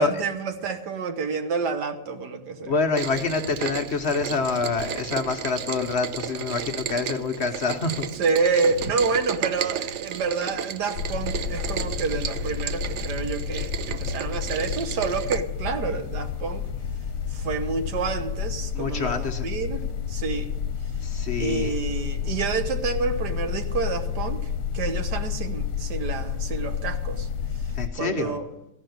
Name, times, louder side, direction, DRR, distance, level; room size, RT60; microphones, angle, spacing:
voice 1, 0.0-2.7 8.2-16.7 17.3-20.5 21.4-24.4 24.7-27.3 28.0-28.5, right 5 dB, 85° right, 7 dB, 1.8 m, -28 dB
voice 2, 2.6-8.1 18.7-19.5 21.0-21.8 27.8-28.4, left 4 dB, 50° left, 6 dB, 0.9 m, -26 dB
Rain, 3.0-15.4, right 9 dB, 65° right, 0.7 m, -33 dB
sound 1, 10.9-27.9, left 7 dB, 85° left, 1.2 m, -30 dB
15.0 x 5.4 x 9.2 m, 0.91 s
omnidirectional pair, 1.7 m